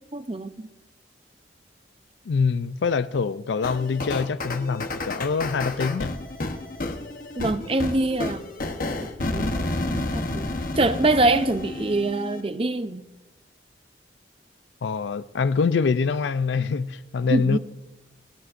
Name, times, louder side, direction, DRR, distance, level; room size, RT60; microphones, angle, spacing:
voice 1, 0.1-0.7 7.4-8.4 9.3-10.5 10.8-13.0 17.3-17.6, right 2 dB, 30° right, 0.6 m, -24 dB
voice 2, 2.3-6.1 14.8-17.6, left 5 dB, 80° left, 0.4 m, -25 dB
sound 1, 3.6-12.4, left 2 dB, 50° left, 1.0 m, -30 dB
30.0 x 14.0 x 2.6 m
head